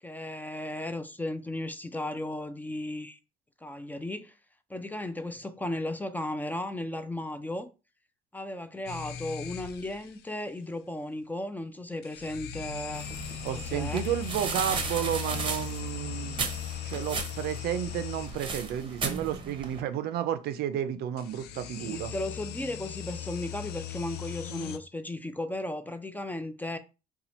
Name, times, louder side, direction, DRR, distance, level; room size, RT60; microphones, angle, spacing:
voice 1, 0.0-3.2 3.6-4.4 4.7-7.7 8.3-13.1 13.5-14.0 21.8-26.8, left 1 dB, 10° left, 0.3 m, -35 dB
sound 1, 8.9-10.1 12.0-18.7 21.2-24.8, left 10 dB, 70° left, 0.4 m, -39 dB
sound 2, 12.9-19.8, right 4 dB, 30° right, 0.7 m, -36 dB
voice 2, 13.4-16.4 16.7-22.1, right 10 dB, 75° right, 0.4 m, -32 dB
2.8 x 2.3 x 4.1 m
cardioid pair, 110°, 17 cm